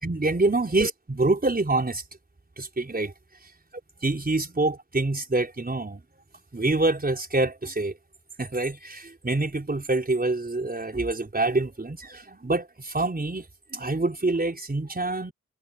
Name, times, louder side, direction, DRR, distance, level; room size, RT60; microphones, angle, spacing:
voice 1, 0.0-2.0 2.6-3.1 4.0-6.0 6.5-7.9 8.4-13.4 13.7-15.3, right 2 dB, 25° right, 4.7 m, -26 dB
supercardioid pair, 40°, 35 cm